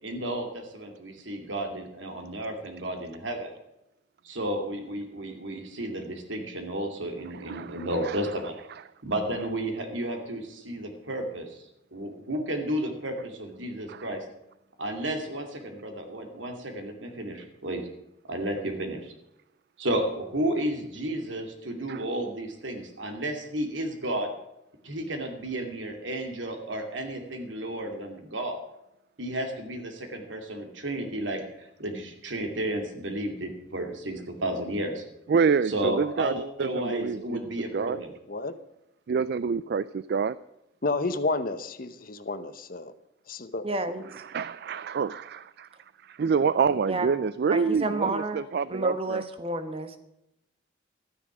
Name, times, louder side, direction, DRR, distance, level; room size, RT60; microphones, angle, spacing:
voice 1, 0.0-3.5 4.2-8.6 9.0-11.6 11.9-14.2 14.8-17.8 18.3-19.1 19.8-24.3 24.8-28.6 29.2-35.0 35.7-38.1, right 1 dB, 85° right, 5 dB, 2.4 m, -32 dB
voice 2, 7.2-8.3 8.7-8.8 13.9-14.1 21.9-22.0 35.3-38.0 39.1-40.4 44.1-45.7 46.0-49.2, right 5 dB, 55° right, 17 dB, 0.3 m, -27 dB
voice 3, 40.8-42.9 43.3-43.6, left 3 dB, 50° left, 12 dB, 0.9 m, -30 dB
voice 4, 43.6-44.1 46.9-47.1 47.5-48.4 48.7-50.0, right 2 dB, 30° right, 8 dB, 1.2 m, -30 dB
12.5 x 9.9 x 6.1 m, 0.87 s
head